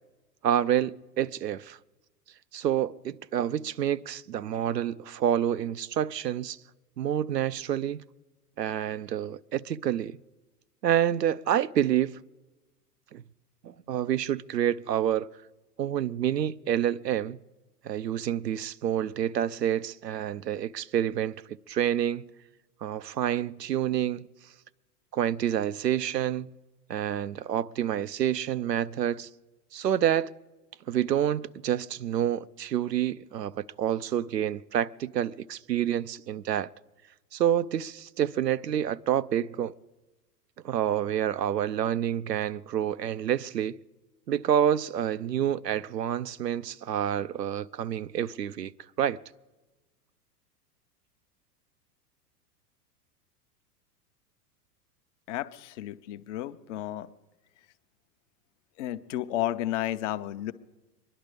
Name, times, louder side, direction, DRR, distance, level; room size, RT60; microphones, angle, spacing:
voice 1, 0.4-1.8 2.5-6.6 7.0-8.0 8.6-10.2 10.8-12.2 13.1-13.2 13.6-15.3 15.8-17.4 17.8-22.3 22.8-24.3 25.1-26.5 26.9-29.3 29.7-30.3 30.9-36.7 37.3-39.7 40.6-43.8 44.3-48.7 49.0-49.2, right 10 dB, 85° right, 0.6 m, -28 dB
voice 2, 55.3-57.1 58.8-60.5, left 13 dB, 45° left, 0.8 m, -32 dB
23.5 x 11.0 x 5.1 m
figure-of-eight pair, 95°, 48 cm